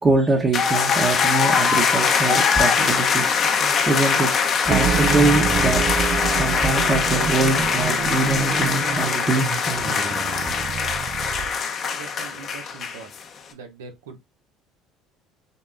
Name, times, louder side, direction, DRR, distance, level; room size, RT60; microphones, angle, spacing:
voice 1, 0.0-3.4 3.9-4.4 4.6-5.9 6.3-10.2, right 3 dB, 30° right, 1.1 m, -23 dB
sound 1, 0.5-13.2, left 6 dB, 50° left, 0.9 m, -22 dB
sound 2, 4.7-11.6, right 8 dB, 55° right, 0.4 m, -27 dB
voice 2, 11.9-13.1 13.5-14.3, right 5 dB, 90° right, 0.8 m, -42 dB
6.6 x 2.3 x 2.5 m
hypercardioid pair, 75°, 0 cm